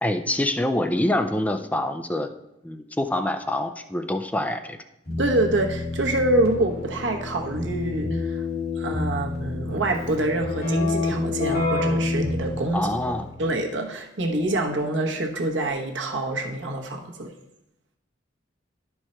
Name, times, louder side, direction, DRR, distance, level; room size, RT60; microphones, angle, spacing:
voice 1, 0.0-2.3 2.6-4.8 12.7-13.3, left 1 dB, 10° left, 7 dB, 0.4 m, -25 dB
Keyboard (musical), 5.1-13.5, left 2 dB, 60° left, 2.5 m, -28 dB
voice 2, 5.2-8.4 8.8-12.9 13.4-17.3, right 1 dB, 85° right, 2 dB, 1.1 m, -26 dB
11.0 x 4.6 x 4.4 m, 0.86 s
head